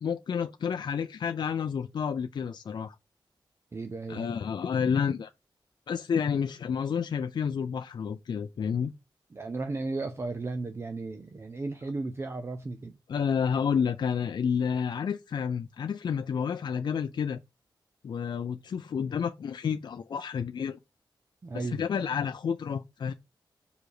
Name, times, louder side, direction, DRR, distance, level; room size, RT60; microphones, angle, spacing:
voice 1, 0.0-2.9 4.1-5.3 5.9-8.9 13.1-17.4 18.0-20.8 21.5-23.1, left 7 dB, 60° left, 0.4 m, -30 dB
voice 2, 3.7-4.3 9.3-13.0 21.4-22.1, right 3 dB, 30° right, 0.6 m, -35 dB
5.1 x 4.9 x 4.7 m
wide cardioid pair, 145°, 8 cm